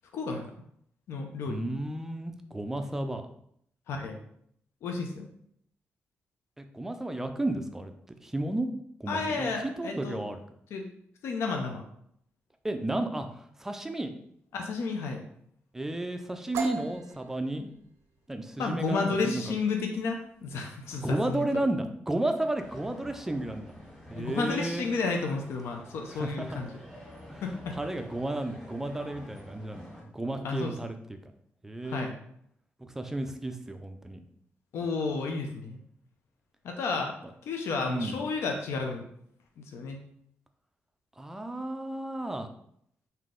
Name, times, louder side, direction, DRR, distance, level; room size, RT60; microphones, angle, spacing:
voice 1, 0.1-0.5 1.1-1.6 3.9-4.2 4.8-5.3 9.1-10.2 10.7-10.9 11.2-11.8 14.5-15.2 18.6-21.4 24.2-26.7 27.4-27.7 30.4-30.7 31.8-32.1 34.7-35.8 36.6-37.1 37.5-39.1 39.6-40.0, left 4 dB, 80° left, 3 dB, 0.5 m, -32 dB
voice 2, 1.5-3.3 6.6-7.9 8.2-8.7 9.0-10.4 12.6-13.3 13.6-14.1 15.7-17.7 18.3-19.5 21.0-23.8 24.1-24.8 26.1-26.7 27.3-27.4 27.7-31.3 31.6-32.1 32.8-34.2 37.9-38.2 41.2-42.5, right 1 dB, 10° right, 7 dB, 0.3 m, -33 dB
sound 1, 16.5-24.2, right 5 dB, 90° right, 0.4 m, -43 dB
sound 2, 22.6-30.0, equal, 10° left, 1.5 m, -49 dB
3.8 x 2.7 x 3.7 m, 0.69 s
wide cardioid pair, 170°, 4 cm